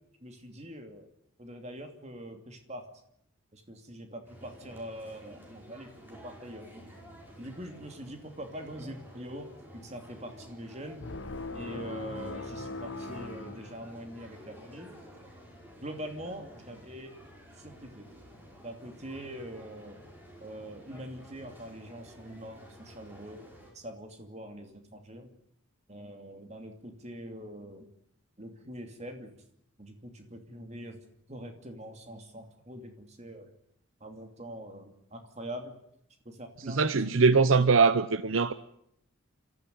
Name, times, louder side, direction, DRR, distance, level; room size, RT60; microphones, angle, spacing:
voice 1, 0.2-1.1 1.4-2.9 3.5-6.8 7.4-11.0 11.5-14.9 15.8-17.1 17.6-18.1 18.6-20.0 20.4-23.4 23.7-25.3 25.9-27.9 28.4-29.3 29.8-31.0 31.3-33.5 34.0-35.7 36.2-37.2, equal, 30° right, 2.8 m, -43 dB
sound 1, 4.2-23.7, equal, 10° right, 5.2 m, -52 dB
sound 2, 11.0-14.3, left 2 dB, 65° left, 1.2 m, -40 dB
voice 2, 36.7-38.5, right 4 dB, 70° right, 0.8 m, -22 dB
27.5 x 14.0 x 9.3 m
head